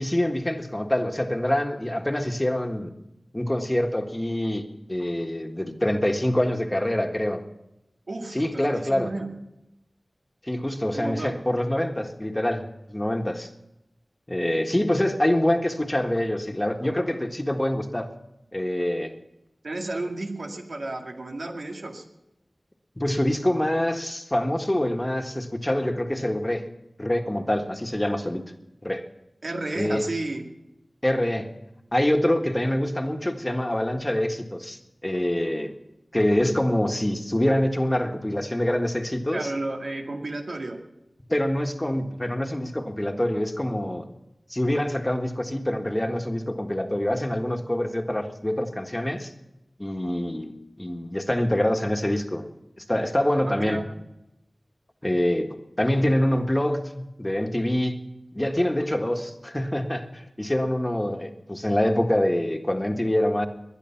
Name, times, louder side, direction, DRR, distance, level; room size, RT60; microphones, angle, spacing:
voice 1, 0.0-2.9 3.3-4.6 4.9-7.4 8.3-9.1 10.4-13.5 14.3-18.1 18.5-19.2 23.0-26.6 27.0-28.4 28.8-29.1 29.7-30.1 31.0-31.5 31.9-35.7 36.1-39.5 41.3-44.1 44.5-49.3 49.8-50.5 50.8-52.5 52.8-53.8 55.0-58.1 58.3-63.5, left 1 dB, 20° left, 5 dB, 1.6 m, -25 dB
voice 2, 8.1-9.3 10.9-11.4 19.6-22.0 29.4-30.4 39.3-40.8 53.5-53.9, right 2 dB, 80° right, 2 dB, 2.1 m, -32 dB
20.5 x 10.5 x 5.9 m, 0.90 s
wide cardioid pair, 55°, 0 cm